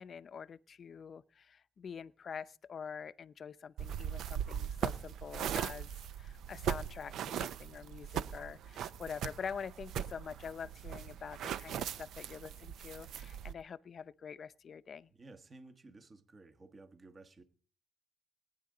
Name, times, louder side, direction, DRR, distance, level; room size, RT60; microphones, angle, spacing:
voice 1, 0.0-5.9 6.2-15.1, left 6 dB, 50° left, 0.6 m, -46 dB
sound 1, 3.8-13.5, right 9 dB, 75° right, 0.5 m, -39 dB
voice 2, 15.1-17.4, right 2 dB, 35° right, 1.3 m, -55 dB
20.5 x 9.5 x 3.8 m
cardioid pair, 90°, 0 cm